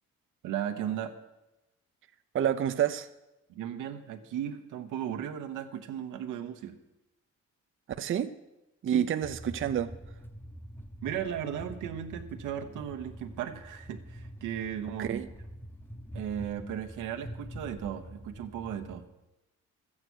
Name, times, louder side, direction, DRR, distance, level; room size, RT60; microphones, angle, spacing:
voice 1, 0.4-1.1 3.5-6.8 8.9-9.1 11.0-15.2 16.1-19.1, right 9 dB, 90° right, 7 dB, 1.1 m, -36 dB
voice 2, 2.3-3.1 8.0-8.3 8.8-9.9 15.0-15.3, right 9 dB, 45° right, 10 dB, 0.6 m, -28 dB
sound 1, 9.2-19.0, equal, 5° left, 0.9 m, -45 dB
12.5 x 8.6 x 6.2 m, 0.97 s
cardioid pair, 90°, 30 cm